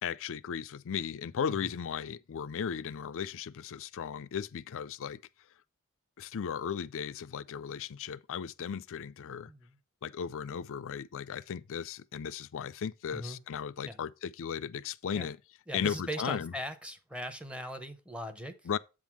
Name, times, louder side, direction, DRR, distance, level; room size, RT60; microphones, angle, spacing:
voice 1, 0.0-5.2 6.2-9.5 10.0-15.4 15.7-16.5 18.7-18.8, left 7 dB, 65° left, 0.4 m, -36 dB
voice 2, 9.5-9.8 13.1-13.4 13.8-14.0 15.1-15.3 15.7-18.5, equal, 5° right, 0.8 m, -40 dB
8.1 x 3.6 x 5.9 m
head